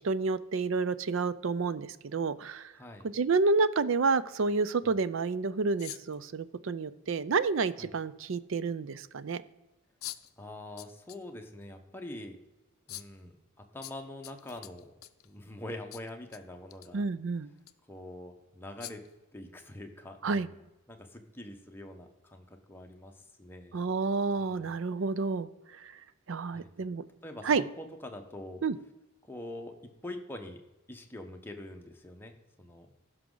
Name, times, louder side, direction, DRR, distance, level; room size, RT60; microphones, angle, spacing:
voice 1, 0.0-2.7 3.0-9.4 16.9-17.5 20.2-20.5 23.7-25.5 25.8-25.9 26.3-27.0 27.4-27.6 28.6-28.8, right 4 dB, 60° right, 15 dB, 0.5 m, -29 dB
voice 2, 2.7-3.1 4.8-4.9 7.8-7.9 10.4-12.4 12.9-13.3 13.7-14.9 15.2-17.0 17.9-19.0 19.3-23.8 24.4-24.7 26.5-26.7 27.2-28.6 29.2-29.7 30.0-30.6 30.9-32.9, left 1 dB, 10° left, 3 dB, 1.0 m, -44 dB
sound 1, 5.8-6.2 7.7-7.8 10.0-10.3 10.8-11.2 11.6-11.7 12.9-13.2 13.8-15.3 15.9-16.4 16.7-16.9 17.6-17.7 18.8-19.1, left 15 dB, 75° left, 0.5 m, -44 dB
15.0 x 6.1 x 3.8 m, 1.0 s
head